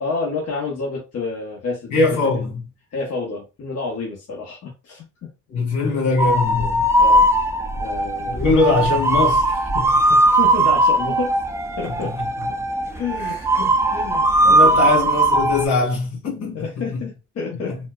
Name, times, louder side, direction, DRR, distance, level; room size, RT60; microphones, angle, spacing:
voice 1, 0.0-2.4 2.9-5.3 5.8-6.0 7.0-7.3 7.8-8.4 10.2-11.4 11.8-12.1 12.9-14.8 16.5-17.8, left 4 dB, 55° left, 1.0 m, -29 dB
voice 2, 1.9-2.6 5.5-6.8 8.2-10.2 12.0-12.1 13.2-13.4 14.4-17.0 17.6-17.8, left 3 dB, 80° left, 1.8 m, -22 dB
sound 1, 6.2-15.7, right 1 dB, 10° right, 0.4 m, -18 dB
4.1 x 2.1 x 2.4 m
cardioid pair, 90°, 30 cm